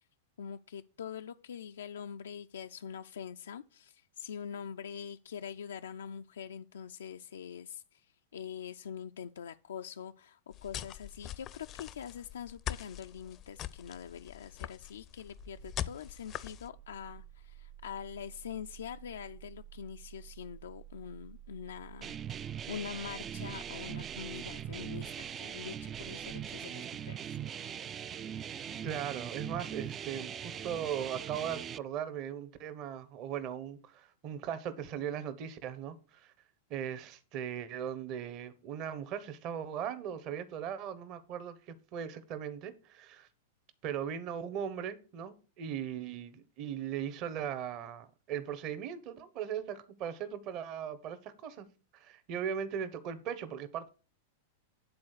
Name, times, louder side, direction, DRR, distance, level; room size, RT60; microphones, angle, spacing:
voice 1, 0.4-22.2 22.7-27.4, left 8 dB, 90° left, 0.4 m, -44 dB
sound 1, 10.5-16.7, left 12 dB, 35° left, 0.5 m, -43 dB
Engine starting, 13.1-27.2, right 11 dB, 70° right, 1.5 m, -54 dB
sound 2, 22.0-31.8, right 9 dB, 25° right, 0.3 m, -41 dB
voice 2, 28.8-36.3 36.7-43.3 43.8-51.7 51.9-53.9, right 9 dB, 45° right, 1.1 m, -38 dB
9.6 x 3.9 x 6.6 m
hypercardioid pair, 125°, 0 cm